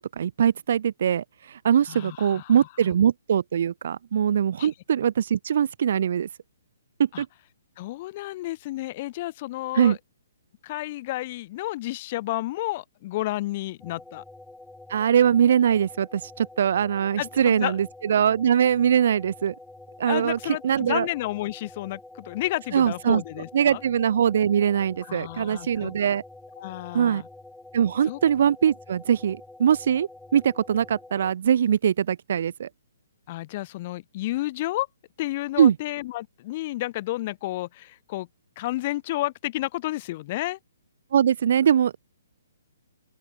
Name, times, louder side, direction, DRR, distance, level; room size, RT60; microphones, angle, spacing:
voice 1, 0.0-6.3 7.0-7.3 9.7-10.0 14.9-19.5 20.0-21.1 22.7-23.2 23.5-26.2 26.9-27.2 27.7-32.7 35.6-35.8 41.1-42.0, right 8 dB, 55° right, 0.5 m, -22 dB
voice 2, 1.9-2.7 4.6-4.7 7.1-7.2 7.8-10.0 10.6-14.2 17.2-17.8 20.1-23.8 25.0-25.9 26.6-27.3 28.1-28.2 33.3-34.9 35.2-38.3 38.6-40.6, left 17 dB, 35° left, 1.8 m, -31 dB
sound 1, 13.8-31.3, left 2 dB, 5° left, 5.2 m, -47 dB
open air
hypercardioid pair, 155°, 0 cm